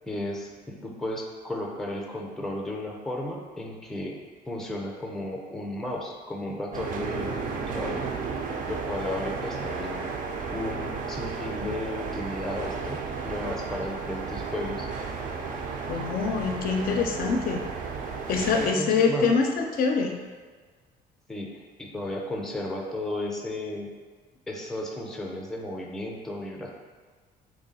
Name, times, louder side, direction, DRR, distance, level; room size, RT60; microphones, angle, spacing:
voice 1, 0.0-4.2 4.5-8.0 8.6-10.1 10.5-14.9 18.6-19.3 21.3-23.9 24.5-26.7, left 1 dB, ahead, -1 dB, 0.5 m, -34 dB
sound 1, 6.7-18.7, right 5 dB, 50° right, 0.4 m, -33 dB
voice 2, 15.9-17.6 18.3-20.2, left 5 dB, 60° left, 3 dB, 0.4 m, -24 dB
3.1 x 2.3 x 3.9 m, 1.5 s
cardioid pair, 110°, 17 cm